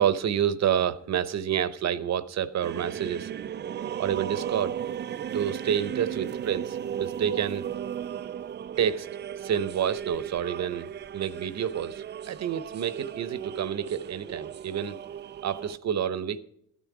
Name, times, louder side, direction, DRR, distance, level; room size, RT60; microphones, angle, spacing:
voice 1, 0.0-3.3 4.0-4.8 5.3-7.7 8.8-9.1 9.4-15.0 15.4-16.4, right 9 dB, 50° right, 0.8 m, -28 dB
sound 1, 2.6-15.8, right 9 dB, 30° right, 0.4 m, -36 dB
12.5 x 9.2 x 4.8 m
cardioid pair, 90°, 35 cm